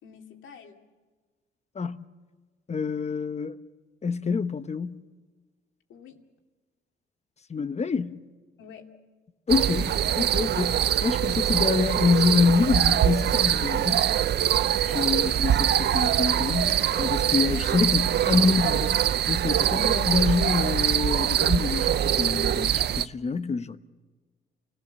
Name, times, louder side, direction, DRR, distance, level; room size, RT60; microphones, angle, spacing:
voice 1, 0.0-0.8 5.9-6.2 8.6-8.9 10.6-10.8 11.2-11.5 14.8-15.1 17.4-17.9, left 7 dB, 80° left, 2.5 m, -48 dB
voice 2, 2.7-3.6 4.0-5.0 7.5-8.2 9.5-14.1 14.9-23.8, left 5 dB, 35° left, 1.1 m, -26 dB
sound 1, 9.5-23.1, right 10 dB, 55° right, 0.6 m, -23 dB
28.0 x 17.0 x 7.1 m
cardioid pair, 90°, 20 cm